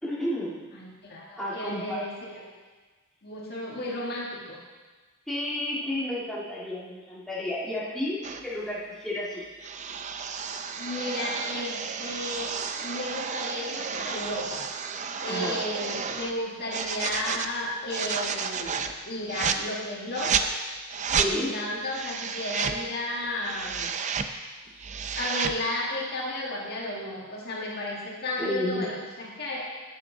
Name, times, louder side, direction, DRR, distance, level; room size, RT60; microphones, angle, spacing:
voice 1, 0.0-0.6 1.4-2.0 5.3-9.5 10.1-10.2 15.2-15.6 21.2-21.5 28.4-28.9, left 1 dB, ahead, -8 dB, 1.9 m, -31 dB
voice 2, 0.7-2.6 3.2-4.6 10.8-14.7 15.2-20.5 21.1-23.9 25.2-29.7, left 1 dB, 50° left, -3 dB, 1.7 m, -33 dB
sound 1, 8.2-8.4 9.6-16.3 16.7-17.5 17.9-18.9 19.3-19.6 20.1-20.5 20.9-21.3 21.8-22.8 23.2-24.3 24.7-25.6, right 6 dB, 35° right, 0.5 m, -31 dB
12.0 x 8.6 x 3.8 m, 1.3 s
head